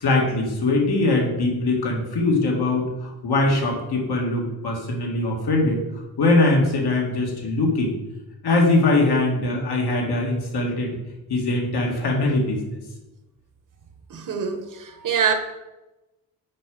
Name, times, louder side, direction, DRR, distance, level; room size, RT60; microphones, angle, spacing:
voice 1, 0.0-5.8 6.2-8.0 8.4-11.0 11.3-12.8, left 2 dB, 75° left, -1 dB, 1.9 m, -21 dB
voice 2, 14.1-15.3, right 7 dB, 50° right, 6 dB, 0.9 m, -24 dB
6.5 x 4.8 x 5.4 m, 1.0 s
wide cardioid pair, 180°, 39 cm